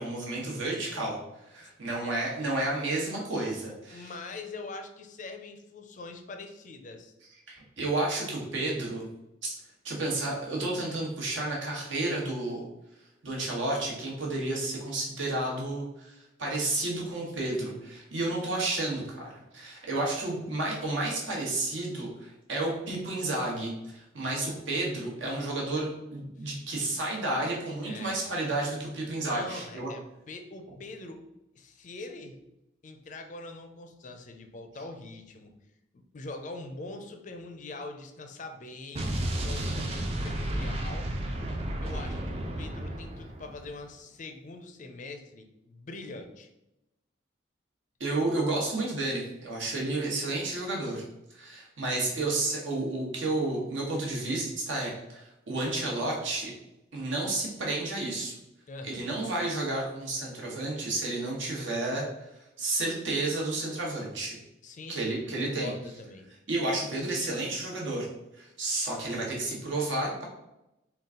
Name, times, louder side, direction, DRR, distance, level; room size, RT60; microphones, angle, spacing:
voice 1, 0.0-4.1 7.5-9.1 9.4-9.5 9.8-12.6 13.2-29.9 48.0-51.0 51.3-56.5 56.9-58.3 58.8-62.1 62.6-64.4 64.9-65.7 66.5-68.1 68.4-70.2, right 2 dB, 80° right, -3 dB, 1.2 m, -31 dB
voice 2, 3.9-7.1 20.0-20.3 22.8-22.9 26.4-26.5 27.8-28.1 29.3-31.2 31.6-32.4 32.8-35.5 36.1-39.1 39.4-41.1 41.8-46.5 58.7-59.1 64.6-66.3, left 3 dB, 40° left, 5 dB, 0.4 m, -43 dB
Explosion, 39.0-43.7, right 1 dB, 30° right, 0.4 m, -32 dB
3.9 x 2.3 x 3.6 m, 0.90 s
head